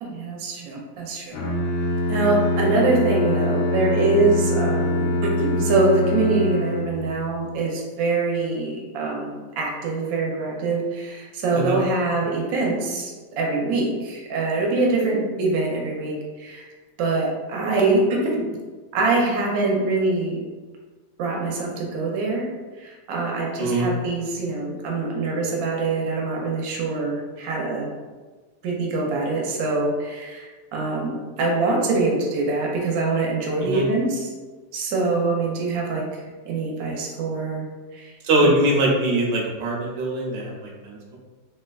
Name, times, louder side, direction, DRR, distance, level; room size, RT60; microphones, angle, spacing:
voice 1, 0.0-1.4 2.1-16.7 17.0-18.5 18.9-20.4 21.2-22.5 22.8-27.9 28.6-34.3 34.7-36.0 36.5-37.7 37.9-38.1 38.4-38.5, right 3 dB, 65° right, -1 dB, 1.0 m, -24 dB
Bowed string instrument, 1.3-7.2, left 1 dB, 85° left, 1.2 m, -24 dB
voice 2, 23.6-23.9 33.6-33.9 38.2-41.2, right 1 dB, 85° right, -1 dB, 1.3 m, -22 dB
3.2 x 2.8 x 2.3 m, 1.3 s
omnidirectional pair, 1.8 m